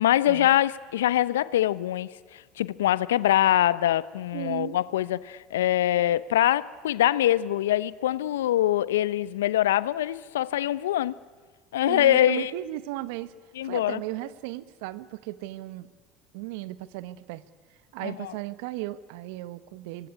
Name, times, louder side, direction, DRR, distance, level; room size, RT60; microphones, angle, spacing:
voice 1, 0.0-11.1 11.7-12.5 13.6-14.0 18.0-18.1, left 13 dB, 80° left, 0.7 m, -24 dB
voice 2, 4.3-4.8 11.9-13.3 13.6-15.9 16.3-17.4 17.9-20.1, right 17 dB, 70° right, 1.2 m, -36 dB
26.0 x 22.0 x 9.8 m
hypercardioid pair, 80°, 0 cm